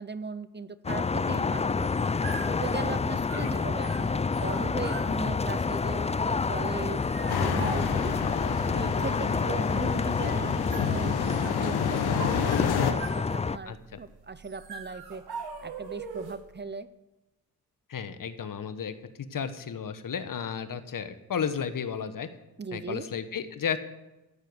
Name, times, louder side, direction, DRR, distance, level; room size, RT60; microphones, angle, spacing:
voice 1, 0.0-1.9 2.3-6.1 6.5-8.1 8.7-15.2 15.6-16.9 22.6-23.1, right 4 dB, 30° right, 14 dB, 0.8 m, -38 dB
sound 1, 0.8-13.6, left 4 dB, 20° left, 0.4 m, -28 dB
sound 2, 1.7-16.5, right 4 dB, 75° right, 2.2 m, -43 dB
sound 3, 7.3-12.9, left 8 dB, 85° left, 1.2 m, -30 dB
voice 2, 13.6-14.0 17.9-18.9 19.3-22.3 22.7-23.8, left 7 dB, 60° left, 11 dB, 1.3 m, -33 dB
15.0 x 6.5 x 9.6 m, 1.0 s
cardioid pair, 55°, 38 cm